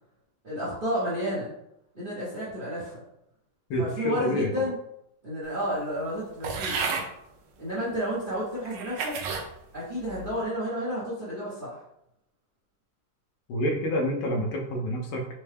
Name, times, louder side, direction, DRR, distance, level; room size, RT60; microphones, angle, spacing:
voice 1, 0.4-1.5 1.9-3.0 3.8-4.8 5.2-6.8 7.6-9.2 9.7-11.8, equal, 35° right, -8 dB, 0.9 m, -31 dB
voice 2, 3.7-4.7 13.5-15.3, equal, 85° left, 1 dB, 1.6 m, -28 dB
sound 1, 6.4-7.1 7.9-8.0 8.6-9.5 10.0-10.4, right 5 dB, 75° right, 1.3 m, -32 dB
4.3 x 2.2 x 3.3 m, 0.76 s
omnidirectional pair, 2.1 m